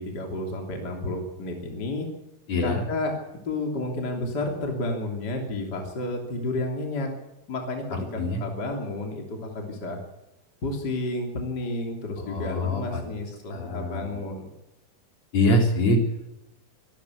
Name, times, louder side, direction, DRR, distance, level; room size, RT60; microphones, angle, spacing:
voice 1, 0.0-2.1 2.6-3.2 3.4-7.1 7.5-7.8 8.1-10.0 10.6-14.5, left 2 dB, 30° left, 1 dB, 3.3 m, -31 dB
voice 2, 2.5-2.8 8.2-8.4 12.3-13.0 13.5-14.2 15.3-16.0, left 1 dB, 50° left, 2 dB, 4.6 m, -24 dB
24.5 x 12.5 x 8.4 m, 0.92 s
omnidirectional pair, 3.9 m